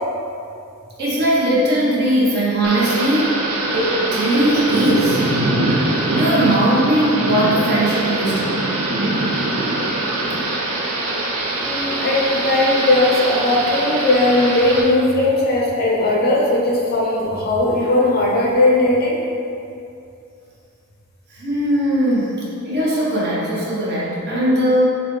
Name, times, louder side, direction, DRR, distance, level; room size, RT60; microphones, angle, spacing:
voice 1, 1.0-3.3 3.7-5.2 6.1-8.7 21.3-24.8, right 1 dB, 50° right, -7 dB, 1.0 m, -19 dB
Thunder / Rain, 2.6-14.8, right 2 dB, 70° right, 0.7 m, -22 dB
voice 2, 11.6-19.2, left 2 dB, 45° left, -3 dB, 0.6 m, -18 dB
6.4 x 2.2 x 3.2 m, 2.6 s
head